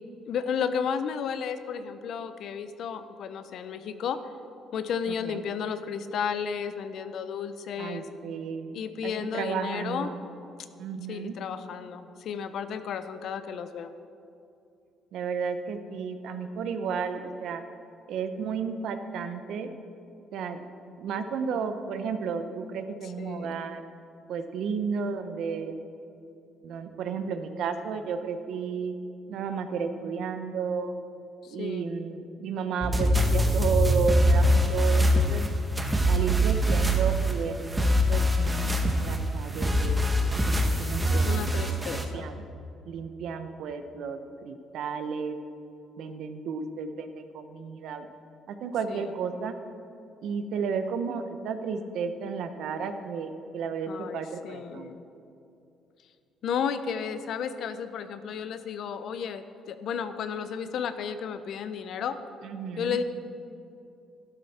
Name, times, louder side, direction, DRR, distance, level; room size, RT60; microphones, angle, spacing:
voice 1, 0.2-4.2 4.7-8.0 8.7-10.1 11.1-13.9 23.2-23.5 31.4-31.9 41.1-42.3 48.9-49.1 53.9-55.0 56.4-62.2 62.8-63.0, left 7 dB, 60° left, 11 dB, 0.7 m, -33 dB
voice 2, 5.1-5.4 7.8-10.2 10.8-11.3 15.1-17.6 18.1-19.7 20.3-20.7 21.0-23.8 24.3-25.8 26.6-28.9 29.3-30.9 31.5-35.4 36.1-40.0 40.5-41.4 41.7-42.4 42.9-45.4 46.0-48.1 48.5-49.6 50.2-54.9 62.4-63.0, right 5 dB, 70° right, 8 dB, 0.9 m, -33 dB
sound 1, 32.8-42.0, equal, 15° right, 1.1 m, -23 dB
12.0 x 12.0 x 4.3 m, 2.6 s
cardioid pair, 125°, 0 cm